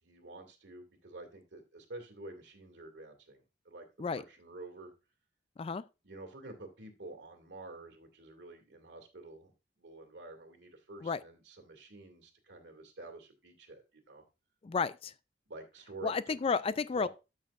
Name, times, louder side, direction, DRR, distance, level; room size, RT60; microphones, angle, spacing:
voice 1, 0.0-4.9 6.0-9.5 9.8-14.2 15.5-16.5 16.9-17.1, right 2 dB, 70° right, 2.3 m, -49 dB
voice 2, 14.6-15.1 16.0-17.1, left 5 dB, 30° left, 0.3 m, -32 dB
12.5 x 6.5 x 2.5 m
head